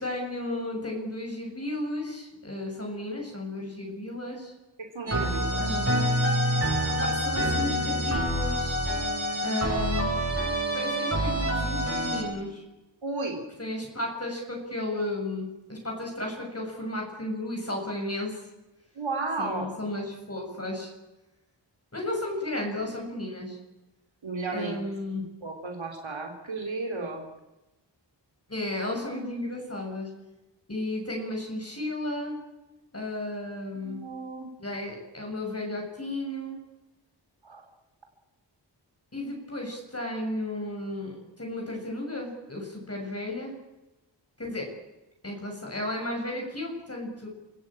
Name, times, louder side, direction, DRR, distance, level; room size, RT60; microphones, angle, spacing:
voice 1, 0.0-4.5 5.6-6.0 6.9-8.8 9.4-10.4 10.7-12.6 13.6-18.4 19.4-20.9 21.9-23.6 24.5-25.2 28.5-30.1 30.7-32.4 32.9-34.0 34.6-36.6 39.1-43.5 44.4-44.7 45.2-47.3, left 1 dB, 30° left, 0 dB, 6.6 m, -34 dB
voice 2, 4.8-5.8 13.0-13.4 19.0-19.7 24.2-24.9 25.1-27.2 33.7-34.5 37.4-37.6, right 3 dB, 85° right, 2 dB, 3.5 m, -34 dB
sound 1, 5.1-12.2, equal, 30° right, 7.3 m, -27 dB
28.5 x 17.5 x 8.9 m, 1.0 s
wide cardioid pair, 80°, 45 cm